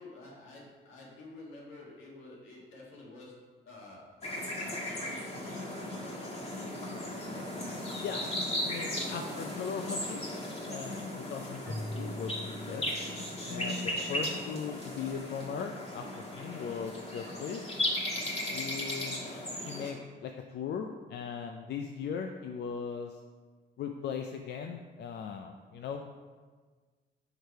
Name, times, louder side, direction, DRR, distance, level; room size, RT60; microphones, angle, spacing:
voice 1, 0.0-4.2 4.6-6.9 7.6-8.5 8.8-9.2 13.9-15.1, left 2 dB, 80° left, -3 dB, 1.6 m, -51 dB
sound 1, 4.2-19.9, left 1 dB, 35° left, 1.4 m, -36 dB
voice 2, 8.6-10.2 10.7-12.8 13.5-17.6 18.5-19.3 19.7-23.2 23.8-26.2, left 6 dB, 60° left, 4 dB, 0.4 m, -39 dB
Keyboard (musical), 11.6-13.9, equal, 10° left, 0.6 m, -42 dB
5.0 x 4.6 x 4.6 m, 1.5 s
cardioid pair, 90°, 20 cm